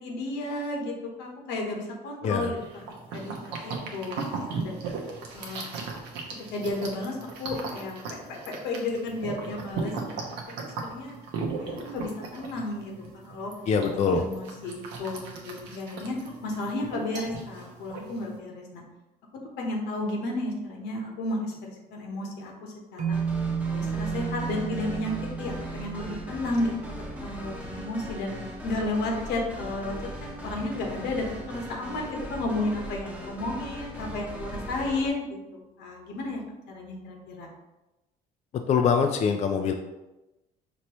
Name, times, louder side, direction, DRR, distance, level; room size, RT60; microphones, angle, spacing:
voice 1, 0.0-2.6 3.1-3.3 3.6-4.2 4.5-4.8 5.3-5.6 6.5-11.2 11.6-13.5 13.9-16.2 16.4-18.8 19.6-23.2 23.7-25.1 25.4-26.7 27.2-28.3 28.6-29.9 30.2-36.4 36.7-37.5, left 2 dB, 85° left, 0 dB, 1.1 m, -33 dB
sound 1, 2.6-18.4, right 4 dB, 85° right, 0.9 m, -37 dB
voice 2, 13.7-14.2 38.7-39.7, left 6 dB, 40° left, 5 dB, 0.4 m, -23 dB
sound 2, 23.0-27.3, right 6 dB, 50° right, 0.5 m, -32 dB
sound 3, 23.1-35.1, equal, 10° right, 1.0 m, -39 dB
5.1 x 2.9 x 3.0 m, 1.0 s
cardioid pair, 110°, 17 cm